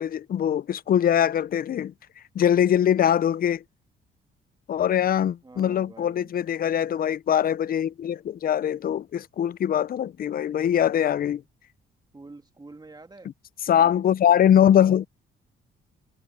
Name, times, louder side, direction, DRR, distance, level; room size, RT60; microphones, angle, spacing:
voice 1, 0.0-1.9 2.3-3.6 4.7-11.4 13.7-15.1, left 9 dB, 45° left, 0.5 m, -22 dB
voice 2, 5.4-6.3 12.1-13.3 13.8-14.1, right 3 dB, 20° right, 2.4 m, -47 dB
cardioid pair, 90°, 20 cm